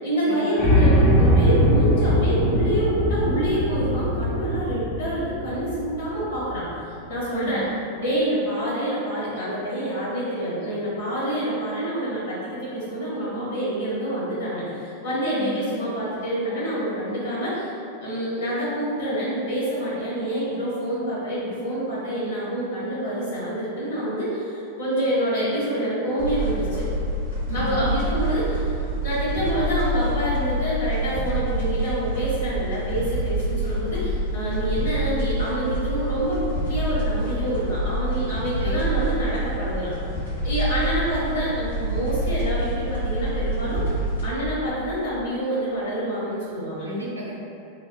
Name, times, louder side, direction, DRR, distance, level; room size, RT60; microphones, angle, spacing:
voice 1, 0.0-7.7 8.0-17.7 18.0-26.8 27.5-28.7 29.0-39.9 40.4-43.9 44.2-46.9, right 1 dB, 60° left, -8 dB, 1.4 m, -27 dB
sound 1, 0.6-6.7, equal, ahead, 0.8 m, -21 dB
voice 2, 7.3-7.7 15.3-15.6 27.5-27.8 38.6-38.9 46.8-47.3, right 1 dB, 80° right, -4 dB, 0.5 m, -33 dB
sound 2, 26.2-44.3, right 1 dB, 80° left, 1.4 m, -27 dB
3.3 x 2.6 x 2.3 m, 2.7 s
figure-of-eight pair, 90°, 0 cm